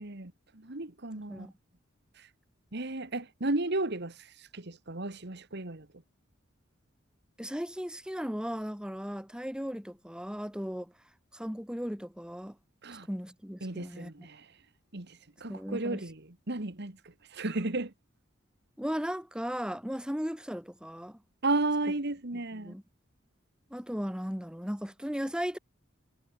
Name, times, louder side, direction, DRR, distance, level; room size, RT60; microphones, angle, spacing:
voice 1, 0.0-1.5 2.2-2.3 2.7-5.9 12.8-13.1 13.6-14.5 14.9-16.2 16.5-17.0 17.3-17.9 21.4-22.7, right 2 dB, 60° right, 2.0 m, -34 dB
voice 2, 1.2-1.5 7.4-10.9 11.3-12.6 13.1-14.3 15.5-16.0 18.8-21.2 22.5-22.8 23.7-25.6, equal, 5° right, 3.6 m, -36 dB
head